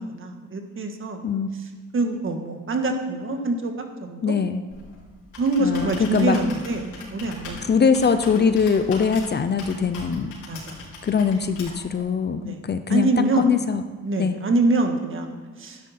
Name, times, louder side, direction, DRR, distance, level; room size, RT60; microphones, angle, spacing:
voice 1, 0.0-1.2 1.9-4.3 5.4-7.7 10.5-10.8 12.4-12.6 12.9-13.5 14.0-15.8, right 2 dB, 45° right, 5 dB, 1.7 m, -25 dB
voice 2, 4.2-4.6 5.6-6.4 7.7-10.3 11.0-13.1 13.4-13.8 14.2-14.4, left 6 dB, 35° left, 10 dB, 0.6 m, -22 dB
Computer keyboard, 4.7-12.0, left 2 dB, 80° left, 3.5 m, -40 dB
12.0 x 10.0 x 4.3 m, 1.4 s
cardioid pair, 90°, 30 cm